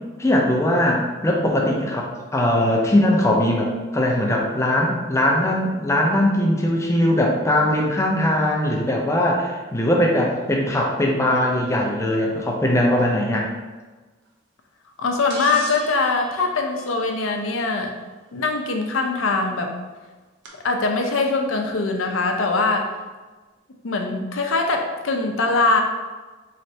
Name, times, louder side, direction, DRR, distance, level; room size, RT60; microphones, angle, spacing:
voice 1, 0.2-13.5, left 1 dB, 15° left, -1 dB, 0.5 m, -20 dB
voice 2, 15.0-17.9 18.3-19.7 20.6-22.9 23.8-25.8, left 3 dB, 75° left, 3 dB, 0.5 m, -22 dB
sound 1, 15.3-17.6 19.2-19.3 20.4-20.5, right 3 dB, 60° right, 0.6 m, -38 dB
4.2 x 3.2 x 2.8 m, 1.3 s
head